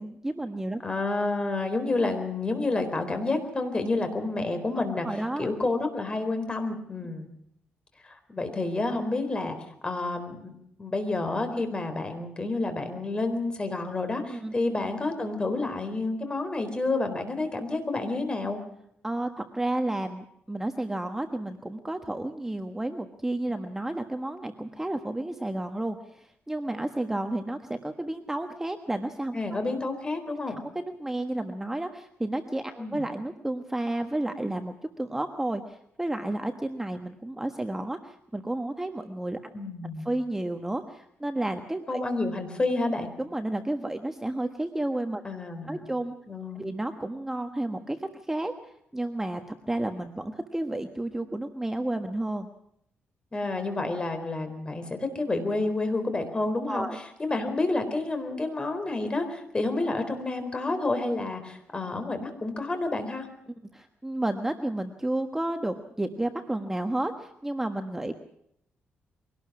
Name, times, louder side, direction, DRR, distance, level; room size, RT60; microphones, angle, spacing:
voice 1, 0.0-0.8 4.8-5.5 14.3-14.5 19.0-29.6 30.5-39.4 40.0-42.0 43.2-45.2 45.7-46.1 46.5-52.5 56.7-57.0 63.7-68.1, right 1 dB, 10° right, 6 dB, 1.3 m, -31 dB
voice 2, 0.8-5.1 5.4-7.3 8.0-9.6 9.8-10.5 10.8-18.6 29.3-30.6 32.8-33.0 39.5-40.1 41.9-43.1 45.2-45.9 46.3-46.7 53.3-56.9 57.2-63.3, left 2 dB, 25° left, 7 dB, 4.1 m, -29 dB
23.5 x 18.5 x 6.1 m, 0.73 s
cardioid pair, 115°, 4 cm